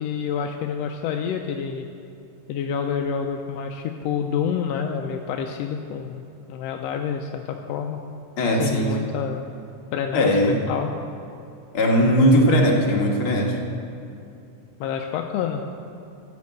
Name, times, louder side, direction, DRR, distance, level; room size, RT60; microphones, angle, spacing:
voice 1, 0.0-1.9 2.5-6.2 6.5-8.0 8.6-9.4 9.9-10.3 10.7-10.9 14.8-15.6, left 7 dB, 80° left, 4 dB, 1.5 m, -28 dB
voice 2, 8.4-8.9 10.1-10.6 11.7-13.6, equal, 50° left, -1 dB, 2.2 m, -19 dB
14.0 x 5.3 x 8.4 m, 2.7 s
omnidirectional pair, 3.4 m